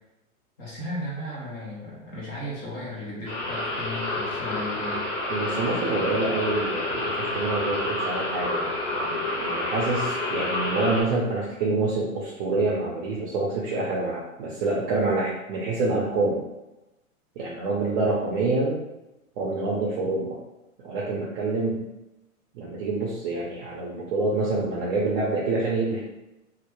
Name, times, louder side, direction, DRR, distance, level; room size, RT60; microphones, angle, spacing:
voice 1, 0.6-5.1 5.9-6.2, left 1 dB, 15° left, -5 dB, 0.3 m, -35 dB
sound 1, 3.2-11.0, left 2 dB, 60° left, 1.0 m, -29 dB
voice 2, 5.3-16.4 17.4-18.8 19.4-20.4 20.8-21.8 22.5-26.0, right 3 dB, 40° right, -5 dB, 0.5 m, -27 dB
2.1 x 2.1 x 3.0 m, 0.96 s
hypercardioid pair, 125°, 43 cm